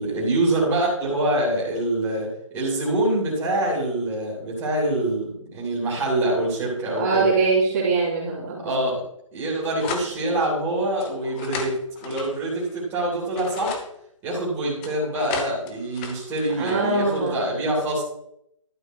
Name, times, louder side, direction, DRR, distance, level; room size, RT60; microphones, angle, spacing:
voice 1, 0.0-7.3 8.6-9.0 9.3-13.8 14.2-18.0, right 1 dB, 15° right, -6 dB, 3.3 m, -25 dB
voice 2, 7.0-8.7 16.6-17.4, right 3 dB, 30° right, -5 dB, 3.3 m, -22 dB
sound 1, 9.8-10.1 11.0-12.8 13.2-13.9 14.8-17.3, left 5 dB, 20° left, 0.9 m, -35 dB
12.0 x 6.4 x 4.7 m, 0.75 s
figure-of-eight pair, 150°, 17 cm